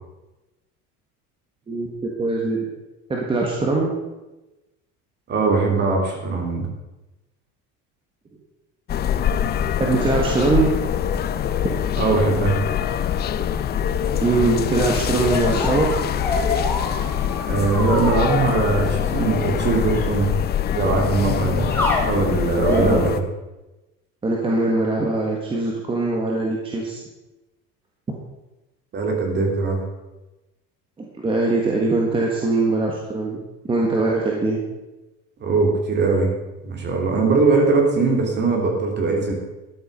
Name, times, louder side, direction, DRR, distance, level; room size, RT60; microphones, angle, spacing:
voice 1, 2.2-2.6 3.1-3.9 9.8-10.7 14.2-15.9 22.7-23.0 24.2-27.0 31.0-33.4 33.7-34.6, right 3 dB, 15° right, -2 dB, 1.7 m, -21 dB
voice 2, 5.3-6.7 11.9-12.6 17.5-20.3 20.7-21.7 22.0-23.2 28.9-29.8 35.4-36.3 36.6-39.3, right 3 dB, 30° right, 2 dB, 3.0 m, -20 dB
sound 1, 8.9-23.2, left 9 dB, 30° left, 0.7 m, -24 dB
cartoon flute, 15.3-18.4 19.7-20.0 21.7-22.1 22.6-22.9, left 2 dB, 5° left, 2.7 m, -27 dB
13.5 x 10.5 x 5.4 m, 1.0 s
cardioid pair, 170°, 33 cm